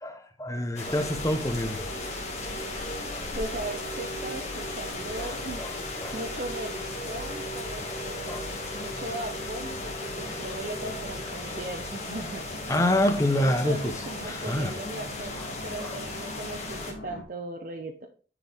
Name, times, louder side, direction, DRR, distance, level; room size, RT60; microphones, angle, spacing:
voice 1, 0.0-1.8 3.1-3.3 5.2-5.3 5.6-5.7 6.0-6.2 8.3-8.4 12.7-13.9 14.2-14.7 15.4-15.5 15.8-16.0, left 1 dB, 15° left, 0.8 m, -27 dB
sound 1, 0.8-17.2, right 1 dB, 85° left, 2.8 m, -40 dB
sound 2, 0.8-16.9, left 3 dB, 35° left, 1.7 m, -37 dB
voice 2, 3.3-5.6 6.1-12.4 13.4-18.1, right 2 dB, 50° right, 0.7 m, -38 dB
10.0 x 4.6 x 3.5 m
head